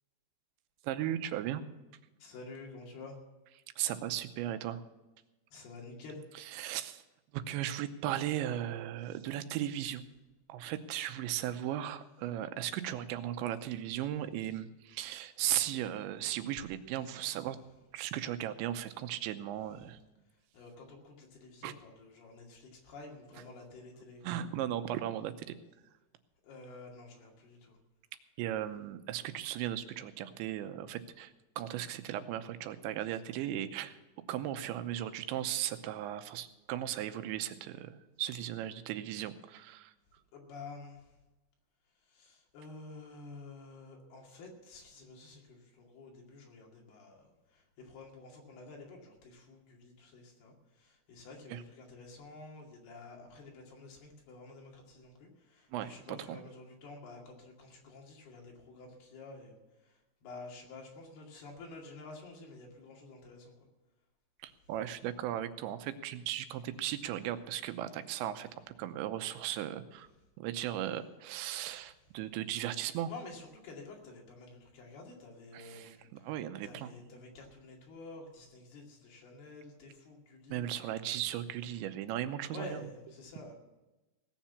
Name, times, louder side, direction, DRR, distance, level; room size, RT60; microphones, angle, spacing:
voice 1, 0.8-1.6 3.8-4.8 6.4-7.0 7.3-10.1 10.5-17.6 17.9-20.0 21.6-21.7 24.2-25.5 28.4-34.0 34.3-39.9 51.5-51.6 55.7-56.4 64.4-68.5 68.8-70.1 70.4-73.1 75.5-76.9 80.5-82.9, right 12 dB, 90° right, 10 dB, 3.1 m, -37 dB
voice 2, 2.2-3.2 5.5-6.2 17.1-17.2 20.5-24.2 26.4-27.8 40.3-41.1 42.1-59.6 59.8-63.5 73.1-76.0 76.6-80.6 82.5-83.5, left 3 dB, 65° left, -1 dB, 4.1 m, -50 dB
17.5 x 7.4 x 7.1 m, 1.1 s
omnidirectional pair, 5.1 m